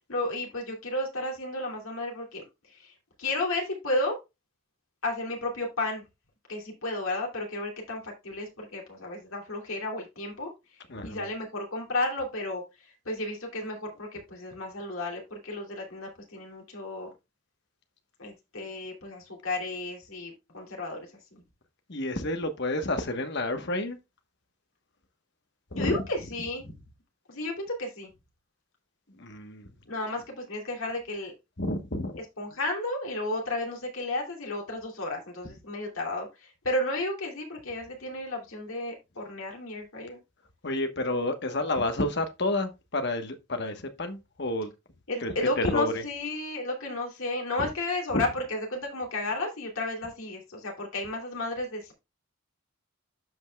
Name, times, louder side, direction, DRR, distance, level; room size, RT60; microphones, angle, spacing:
voice 1, 0.1-4.2 5.0-6.0 6.5-10.5 11.0-12.6 13.0-17.1 18.2-21.4 25.7-26.7 27.3-28.1 29.9-31.3 32.4-40.2 45.1-51.9, left 2 dB, 75° left, 2.9 m, -33 dB
voice 2, 10.9-11.3 21.9-24.0 25.7-26.0 29.1-29.7 31.6-32.2 40.6-44.7 45.2-46.0 47.6-47.7 48.1-48.3, left 2 dB, 50° left, 1.2 m, -30 dB
12.5 x 5.4 x 2.3 m
head